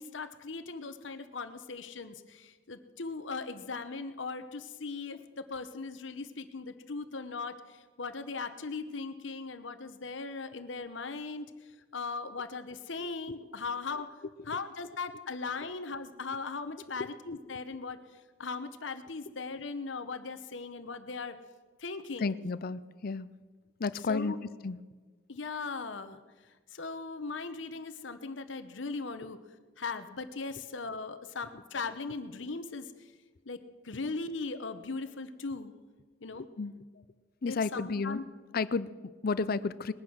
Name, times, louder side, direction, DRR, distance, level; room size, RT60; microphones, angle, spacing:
voice 1, 0.0-14.1 14.5-21.4 21.8-22.3 24.1-24.4 25.3-26.2 26.7-29.4 29.8-33.1 33.4-33.6 33.8-35.7 36.2-36.5 37.5-38.2, left 4 dB, 80° left, 10 dB, 1.0 m, -39 dB
voice 2, 22.2-23.3 23.8-24.4 24.6-24.8 36.6-36.7 37.4-38.2 38.5-39.9, left 4 dB, 55° left, 16 dB, 0.5 m, -32 dB
20.5 x 9.5 x 6.4 m, 1.4 s
head